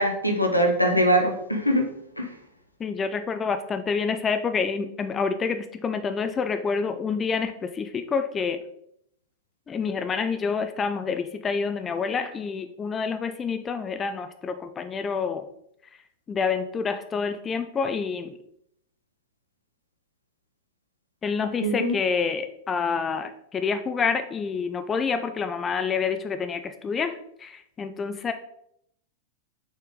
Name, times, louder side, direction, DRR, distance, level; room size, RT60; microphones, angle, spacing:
voice 1, 0.0-1.8 2.2-2.3 21.6-21.9, equal, 90° left, 3 dB, 0.9 m, -22 dB
voice 2, 2.8-8.6 9.7-15.5 16.3-18.4 21.2-28.3, left 5 dB, 20° left, 9 dB, 0.4 m, -28 dB
6.2 x 4.3 x 3.7 m, 0.72 s
figure-of-eight pair, 90°, 0 cm